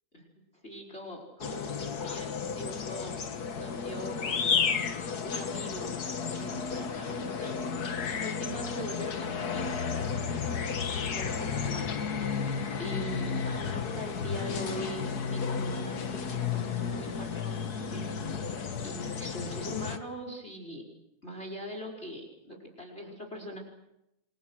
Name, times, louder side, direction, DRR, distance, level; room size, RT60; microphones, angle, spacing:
voice 1, 0.6-4.6 5.2-6.0 6.3-12.0 12.4-20.8 21.2-23.6, equal, 20° left, 2 dB, 5.2 m, -42 dB
sound 1, 1.4-20.0, left 6 dB, 45° left, 1.4 m, -33 dB
29.5 x 23.0 x 6.4 m, 0.85 s
omnidirectional pair, 3.3 m